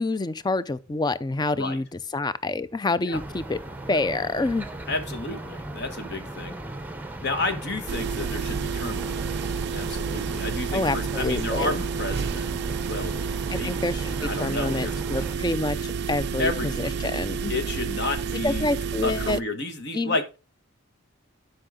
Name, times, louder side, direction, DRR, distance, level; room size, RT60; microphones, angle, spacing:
voice 1, 0.0-1.9 2.1-3.6 3.9-4.7 10.7-11.8 13.5-17.5 18.4-19.4 19.9-20.2, left 2 dB, 20° left, 0.4 m, -27 dB
sound 1, 3.1-15.4, right 1 dB, 10° right, 0.7 m, -37 dB
voice 2, 4.9-6.5 7.2-9.2 9.4-12.5 12.9-13.1 13.5-13.9 14.2-14.9 16.4-16.9 17.5-18.7 19.0-20.2, left 2 dB, 55° left, 1.4 m, -31 dB
sound 2, 7.9-19.4, right 6 dB, 55° right, 0.4 m, -30 dB
11.5 x 5.5 x 3.7 m
head